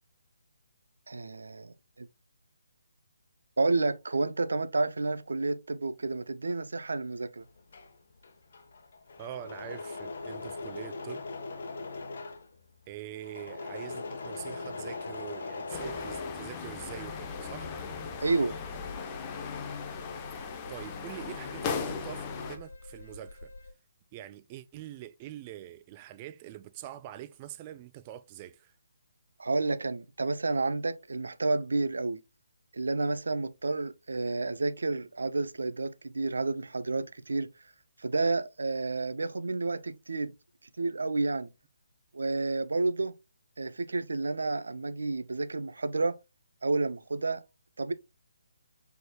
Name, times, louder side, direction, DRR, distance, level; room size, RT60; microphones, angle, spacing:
voice 1, 1.1-2.1 3.6-7.4 18.2-18.6 29.4-32.2 32.7-37.5 38.0-40.3 40.8-41.5 42.1-43.1 43.6-46.2 46.6-47.4 47.8-47.9, right 3 dB, 75° right, 0.5 m, -30 dB
Engine / Mechanisms, 7.5-17.1 17.4-19.8 20.0-20.7, left 3 dB, 60° left, 0.9 m, -41 dB
voice 2, 9.2-11.2 12.9-17.7 20.7-23.5 24.1-28.7, right 12 dB, 25° right, 0.4 m, -44 dB
sound 1, 15.7-22.6, left 6 dB, 25° left, 0.7 m, -38 dB
sound 2, 16.8-23.7, left 2 dB, 80° left, 1.1 m, -47 dB
5.9 x 3.5 x 2.3 m
figure-of-eight pair, 150°, 0 cm